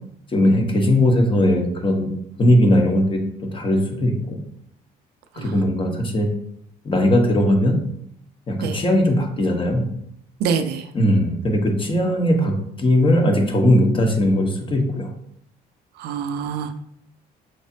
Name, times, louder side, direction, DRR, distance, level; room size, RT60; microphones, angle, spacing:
voice 1, 0.3-2.1 2.4-4.4 5.3-6.3 6.8-7.8 8.5-9.9 10.9-15.1, left 1 dB, 30° left, 2 dB, 1.0 m, -19 dB
voice 2, 10.4-10.8 16.0-16.8, right 6 dB, 75° right, 7 dB, 0.5 m, -25 dB
5.8 x 3.2 x 2.8 m, 0.70 s
cardioid pair, 110°, 17 cm